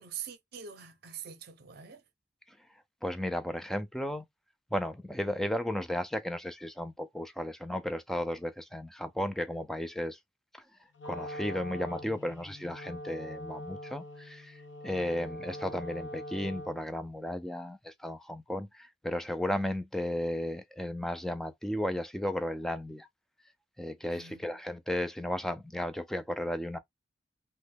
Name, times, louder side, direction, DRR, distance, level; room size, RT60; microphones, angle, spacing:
voice 1, 0.0-2.0 24.1-24.6, right 8 dB, 55° right, 0.6 m, -44 dB
voice 2, 3.0-4.2 4.7-10.2 10.5-10.6 11.0-23.1 23.8-26.8, left 1 dB, ahead, 0.3 m, -34 dB
Wind instrument woodwind instrument, 10.9-17.0, equal, 90° left, 0.9 m, -43 dB
3.0 x 2.2 x 3.3 m
head